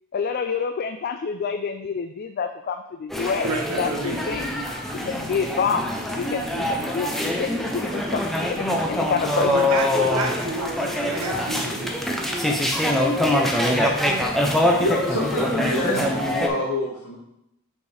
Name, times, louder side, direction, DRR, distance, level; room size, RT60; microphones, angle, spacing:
voice 1, 0.1-3.5 3.8-4.5 5.0-5.9 6.1-9.5, left 6 dB, 45° left, 7 dB, 0.3 m, -28 dB
sound 1, 3.1-16.5, left 1 dB, ahead, 0.6 m, -24 dB
voice 2, 3.4-4.2 9.5-12.0, right 3 dB, 75° right, 2 dB, 1.1 m, -30 dB
voice 3, 14.4-17.2, left 1 dB, 75° left, -4 dB, 2.3 m, -27 dB
5.7 x 4.5 x 4.9 m, 0.83 s
head